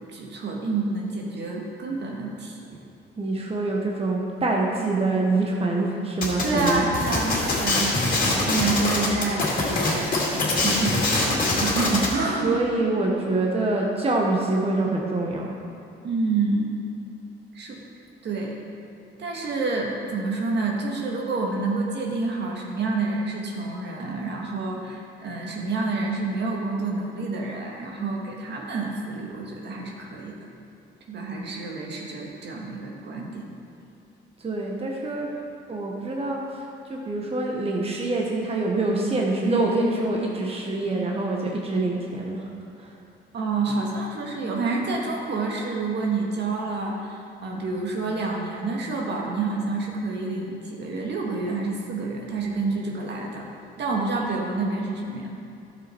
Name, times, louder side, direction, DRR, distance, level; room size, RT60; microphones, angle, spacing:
voice 1, 0.1-2.6 6.4-12.6 16.0-16.7 17.5-17.8 18.2-18.6 19.2-30.3 31.1-33.4 43.3-53.5 53.8-55.3, right 3 dB, 60° right, -1 dB, 1.8 m, -28 dB
voice 2, 3.2-6.8 12.4-15.6 34.4-35.3 35.7-42.5 42.8-43.0, right 2 dB, 30° right, -1 dB, 1.2 m, -25 dB
sound 1, 6.2-12.1, left 2 dB, 45° left, 2.5 m, -24 dB
12.0 x 7.0 x 4.5 m, 2.6 s
cardioid pair, 90°, 20 cm